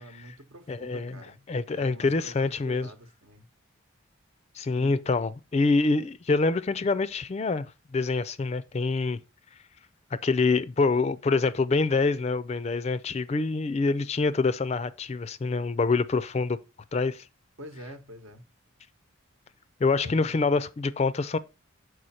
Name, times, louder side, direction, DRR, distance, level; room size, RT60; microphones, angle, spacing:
voice 1, 0.0-1.5 1.7-3.5 4.7-5.2 17.6-18.5 20.0-20.4, equal, 75° right, 1.0 m, -46 dB
voice 2, 0.7-1.1 1.5-2.9 4.6-7.7 7.9-9.2 10.1-16.6 16.9-17.2 19.8-21.4, left 3 dB, 30° left, 0.3 m, -26 dB
6.3 x 4.9 x 4.1 m
head